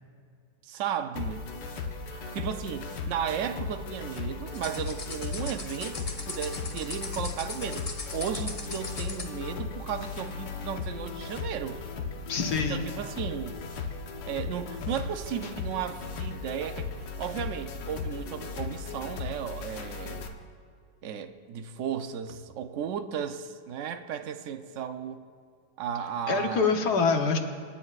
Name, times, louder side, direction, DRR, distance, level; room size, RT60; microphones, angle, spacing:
voice 1, 0.6-1.5 2.1-11.8 12.5-13.6 14.3-20.3 21.0-25.2 25.8-26.7, right 8 dB, 60° right, 8 dB, 0.8 m, -35 dB
sound 1, 1.2-20.3, left 5 dB, 85° left, 1.6 m, -37 dB
sound 2, 4.5-9.4, left 3 dB, 35° left, 0.6 m, -40 dB
voice 2, 12.3-12.9 26.3-27.4, left 5 dB, 70° left, 4 dB, 1.6 m, -25 dB
26.0 x 9.8 x 2.4 m, 2.2 s
omnidirectional pair, 1.8 m